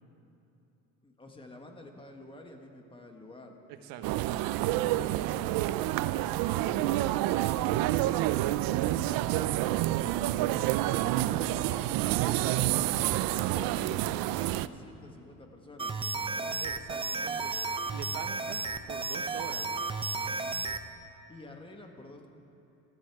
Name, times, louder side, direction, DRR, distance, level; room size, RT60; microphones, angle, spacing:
voice 1, 1.0-3.6 9.1-9.5 10.4-12.8 13.4-16.6 21.3-22.3, left 2 dB, 15° left, 3 dB, 1.4 m, -50 dB
voice 2, 3.7-5.6 6.5-8.3 9.9-10.3 12.2-13.9 16.5-19.8, right 8 dB, 85° right, 7 dB, 1.3 m, -44 dB
sound 1, 4.0-14.7, right 15 dB, 70° right, 0.5 m, -28 dB
sound 2, 15.8-20.8, right 3 dB, 15° right, 0.5 m, -33 dB
18.5 x 14.5 x 4.7 m, 2.9 s
cardioid pair, 135°, 36 cm